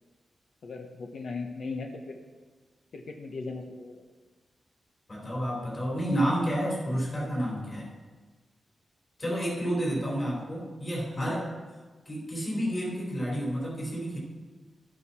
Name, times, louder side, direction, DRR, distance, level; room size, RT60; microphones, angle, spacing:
voice 1, 0.6-2.2 2.9-4.0 10.3-10.4 11.1-11.3, left 3 dB, 65° left, 3 dB, 1.0 m, -38 dB
voice 2, 5.1-7.9 9.2-11.5 12.1-14.2, equal, 35° left, -3 dB, 4.2 m, -30 dB
11.0 x 10.5 x 4.3 m, 1.4 s
wide cardioid pair, 135°, 0 cm